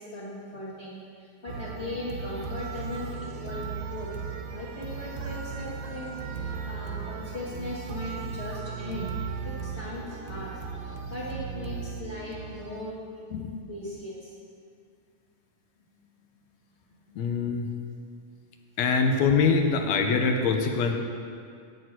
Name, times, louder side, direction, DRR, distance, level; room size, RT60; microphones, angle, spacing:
voice 1, 0.0-4.1 4.5-9.1 9.4-12.9 13.7-14.3 16.9-17.2, left 1 dB, 45° left, -9 dB, 0.9 m, -38 dB
sound 1, 1.5-12.8, right 6 dB, 80° right, 2.2 m, -36 dB
voice 2, 17.2-17.7 18.8-20.9, left 5 dB, 75° left, 4 dB, 1.9 m, -24 dB
11.0 x 4.3 x 7.8 m, 2.2 s
omnidirectional pair, 3.3 m